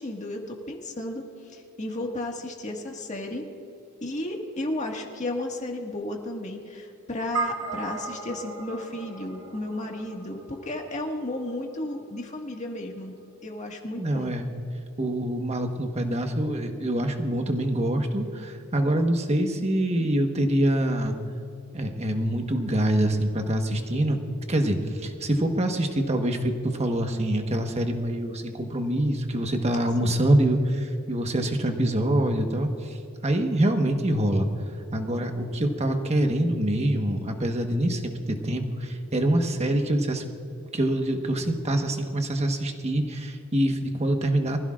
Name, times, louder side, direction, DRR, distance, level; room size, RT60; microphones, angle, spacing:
voice 1, 0.0-3.5 4.0-13.1 13.4-14.3 30.0-30.1, left 1 dB, 35° left, 1 dB, 1.8 m, -33 dB
sound 1, 7.3-11.9, right 4 dB, 85° right, 1.8 m, -36 dB
voice 2, 14.0-14.5 15.0-21.2 21.7-24.2 24.5-33.0 33.2-34.5 34.9-40.2 40.7-44.6, right 1 dB, 30° right, 4 dB, 1.3 m, -25 dB
24.0 x 15.5 x 2.5 m, 2.6 s
head